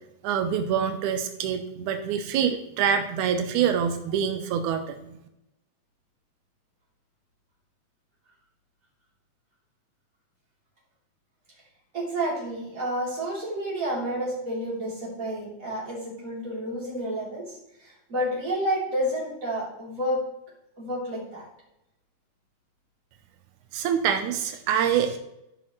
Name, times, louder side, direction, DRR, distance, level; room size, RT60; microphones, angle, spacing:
voice 1, 0.2-5.0 23.7-25.2, right 8 dB, 90° right, 7 dB, 2.1 m, -25 dB
voice 2, 11.9-20.2 20.8-21.5, equal, 25° right, -6 dB, 3.6 m, -30 dB
13.5 x 5.7 x 3.1 m, 0.84 s
omnidirectional pair, 3.5 m